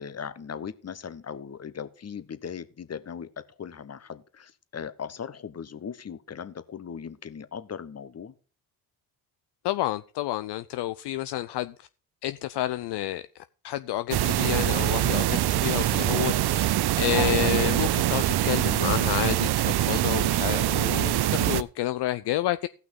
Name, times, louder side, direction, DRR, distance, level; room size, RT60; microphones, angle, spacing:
voice 1, 0.0-8.3 17.0-17.2, left 7 dB, 30° left, 14 dB, 1.1 m, -38 dB
voice 2, 9.6-11.9 12.2-22.7, left 14 dB, 55° left, 13 dB, 0.6 m, -30 dB
sound 1, 14.1-21.6, right 13 dB, 50° right, 0.7 m, -24 dB
16.0 x 6.0 x 5.4 m, 0.38 s
hypercardioid pair, 55°, 49 cm